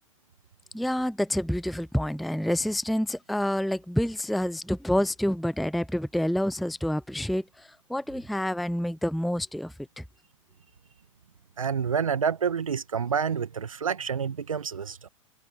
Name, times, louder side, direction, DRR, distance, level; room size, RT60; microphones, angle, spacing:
voice 1, 0.7-7.4 7.9-10.0, left 1 dB, ahead, 0.5 m, -28 dB
voice 2, 11.6-15.1, right 6 dB, 80° right, 1.5 m, -28 dB
figure-of-eight pair, 100°, 17 cm